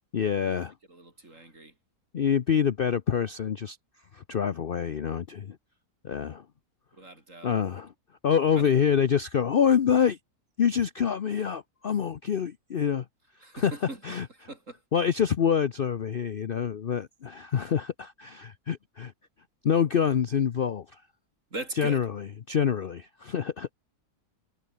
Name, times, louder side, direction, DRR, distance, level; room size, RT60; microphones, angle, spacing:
voice 1, 0.1-0.7 2.1-3.8 4.1-5.6 6.0-6.4 7.4-7.9 8.2-10.2 10.6-13.0 13.6-13.7 14.0-14.3 14.9-19.1 19.6-21.0 21.8-22.1 22.5-23.7, left 7 dB, 50° left, 0.7 m, -26 dB
voice 2, 0.9-1.8 6.9-7.5 8.5-8.7 13.4-14.8 16.7-16.8 21.5-22.1 23.2-23.4, right 2 dB, 55° right, 5.6 m, -41 dB
omnidirectional pair, 1.6 m